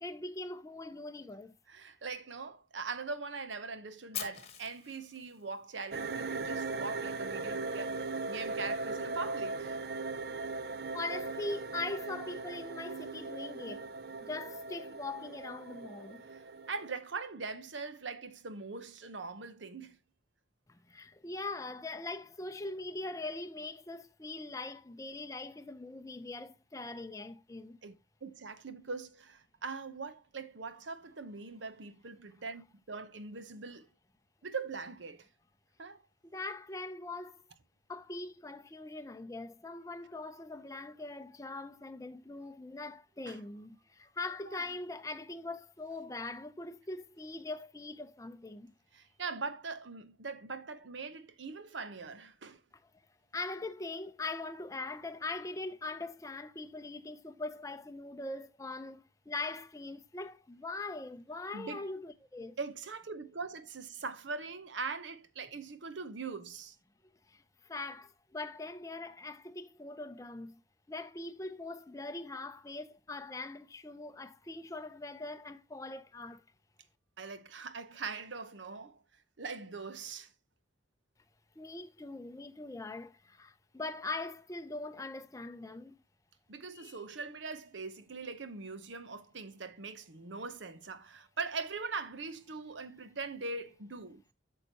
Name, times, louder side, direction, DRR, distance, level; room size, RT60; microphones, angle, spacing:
voice 1, 0.0-1.5 10.9-13.9 14.2-16.2 20.7-27.8 36.2-37.4 37.9-48.7 53.3-62.5 67.3-70.5 70.9-76.4 81.6-86.0 86.7-87.0, left 2 dB, 15° left, 0.5 m, -42 dB
voice 2, 1.7-9.8 16.3-20.0 27.8-27.9 28.2-33.9 34.4-35.3 35.8-36.0 43.3-43.4 44.4-44.6 48.9-52.6 61.5-61.8 62.6-66.7 77.2-79.0 79.4-80.3 86.5-94.2, right 4 dB, 80° right, 0.9 m, -41 dB
Fire, 4.1-6.2, left 10 dB, 35° left, 1.2 m, -43 dB
sound 1, 5.9-16.9, right 3 dB, 55° right, 0.5 m, -39 dB
8.8 x 6.5 x 2.9 m
head